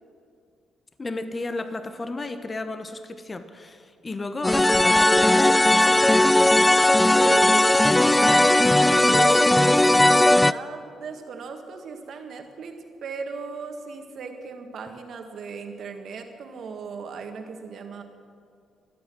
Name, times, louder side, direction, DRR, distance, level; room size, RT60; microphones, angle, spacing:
voice 1, 1.0-6.4, left 2 dB, 30° left, 9 dB, 1.0 m, -33 dB
sound 1, 4.4-10.5, left 1 dB, 10° left, 0.3 m, -17 dB
voice 2, 7.1-7.7 8.1-8.6 9.1-12.7 13.0-18.0, right 5 dB, 65° right, 5 dB, 1.7 m, -36 dB
24.0 x 8.3 x 6.2 m, 2.3 s
cardioid pair, 75°, 0 cm